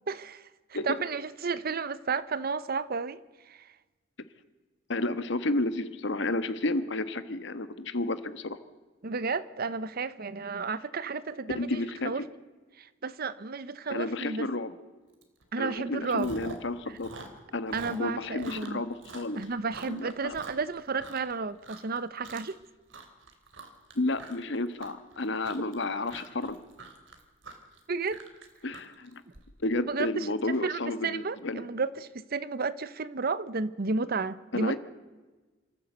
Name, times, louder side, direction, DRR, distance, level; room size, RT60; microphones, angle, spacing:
voice 1, 0.1-3.2 3.5-3.7 9.0-12.2 12.8-14.5 15.5-16.3 17.7-18.8 19.4-22.6 27.9-28.2 29.9-30.3 30.6-34.8, right 4 dB, 55° right, 0.8 m, -32 dB
voice 2, 4.9-8.6 11.5-12.2 13.9-14.7 15.6-17.1 17.5-19.4 19.9-20.3 23.9-26.6 28.6-29.2 29.6-31.6 34.5-34.8, left 2 dB, 70° left, 1.4 m, -31 dB
Chewing mastication, 15.2-15.4 15.7-16.7 17.0-21.3 21.6-22.0 22.2-22.6 22.9-29.4, right 3 dB, 75° right, 2.9 m, -45 dB
25.5 x 14.5 x 8.1 m
head